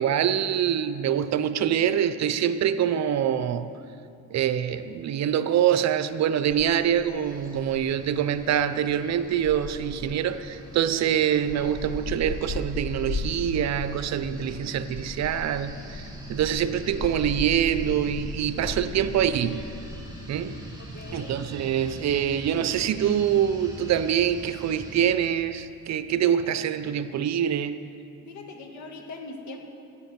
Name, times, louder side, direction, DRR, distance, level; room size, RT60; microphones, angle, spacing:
voice 1, 0.0-3.7 4.3-19.7 20.3-20.6 21.1-27.9, right 9 dB, 60° right, 12 dB, 0.6 m, -25 dB
sound 1, 6.5-26.3, left 2 dB, 45° left, 1.5 m, -38 dB
sound 2, 7.2-25.1, right 1 dB, 15° right, 2.3 m, -44 dB
voice 2, 20.8-21.3 28.2-29.6, left 3 dB, 70° left, 3 dB, 1.7 m, -41 dB
13.5 x 8.1 x 5.9 m, 2.6 s
cardioid pair, 90°, 30 cm